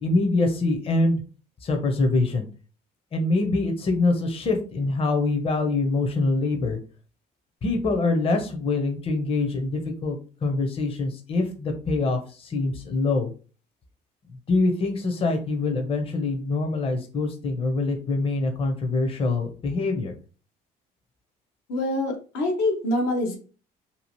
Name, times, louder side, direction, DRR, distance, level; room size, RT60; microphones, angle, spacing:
voice 1, 0.0-1.2 1.6-2.5 3.1-6.8 7.6-13.3 14.5-20.1, left 3 dB, 35° left, 4 dB, 0.6 m, -24 dB
voice 2, 21.7-23.4, left 1 dB, 90° left, 1 dB, 0.9 m, -25 dB
2.8 x 2.4 x 2.9 m, 0.37 s
cardioid pair, 110°, 17 cm